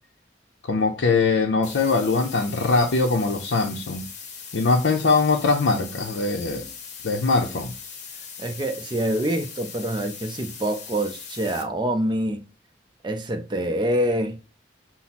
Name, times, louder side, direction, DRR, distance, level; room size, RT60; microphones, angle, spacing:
voice 1, 0.7-4.0 4.5-6.7 7.0-7.7, left 3 dB, 80° left, 0.5 m, -22 dB
sound 1, 1.6-11.6, left 6 dB, 40° left, 0.8 m, -40 dB
voice 2, 8.4-12.4 13.0-14.4, right 1 dB, 25° right, 0.5 m, -26 dB
5.7 x 2.0 x 4.1 m
head